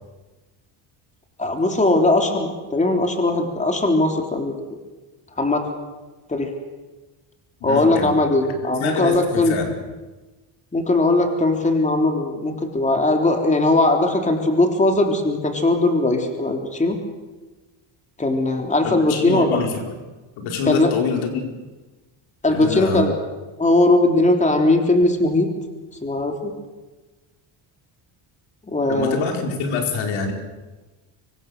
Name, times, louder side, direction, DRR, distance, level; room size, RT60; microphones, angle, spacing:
voice 1, 1.4-4.5 5.4-5.7 6.3-6.5 7.6-9.6 10.7-17.0 18.2-19.6 20.7-20.9 22.4-23.1 23.6-25.5 26.0-26.5 28.7-29.2, left 2 dB, 15° left, 3 dB, 3.5 m, -19 dB
voice 2, 7.6-8.1 8.4-8.5 8.8-9.7 18.8-19.9 20.4-21.5 22.5-23.1 28.9-30.3, left 4 dB, 80° left, 3 dB, 4.8 m, -25 dB
25.5 x 24.0 x 6.8 m, 1.2 s
cardioid pair, 125°, 47 cm